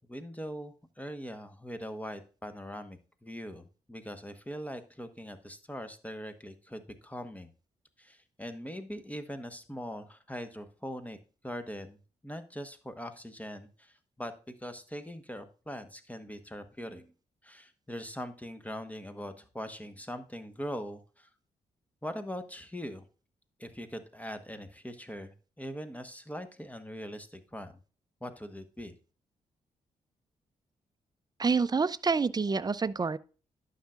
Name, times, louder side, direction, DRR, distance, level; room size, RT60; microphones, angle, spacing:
voice 1, 0.1-7.5 8.0-11.2 11.4-12.0 12.2-17.1 17.4-21.3 22.0-23.0 23.6-27.8 28.2-28.9, equal, 10° left, 1.2 m, -41 dB
voice 2, 31.4-33.2, right 4 dB, 25° right, 0.5 m, -27 dB
11.5 x 5.7 x 2.4 m
supercardioid pair, 45°, 15 cm